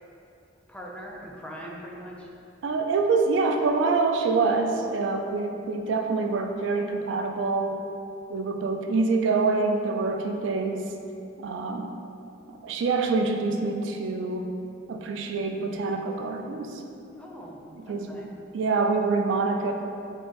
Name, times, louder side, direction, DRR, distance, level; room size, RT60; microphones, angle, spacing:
voice 1, 0.7-2.3 17.2-17.6 17.8-18.3, equal, 5° left, -2 dB, 0.4 m, -41 dB
voice 2, 2.6-7.8 8.3-10.9 11.4-11.9 12.6-14.5 14.9-16.8 17.7-18.3 18.5-19.7, right 4 dB, 75° right, 4 dB, 0.3 m, -26 dB
3.7 x 2.5 x 3.8 m, 2.7 s
head